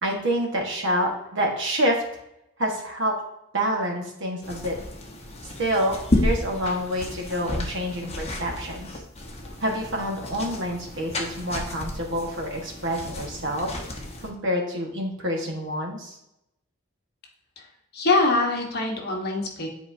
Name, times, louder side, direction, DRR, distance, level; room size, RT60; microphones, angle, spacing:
voice 1, 0.0-2.0 2.6-3.2 3.5-4.8 5.6-8.9 9.6-16.2, equal, 60° right, 0 dB, 1.5 m, -27 dB
sound 1, 4.4-14.3, left 1 dB, 30° left, 1.1 m, -32 dB
voice 2, 17.9-19.7, left 2 dB, 50° left, 1 dB, 1.3 m, -23 dB
10.0 x 4.4 x 2.7 m, 0.82 s
head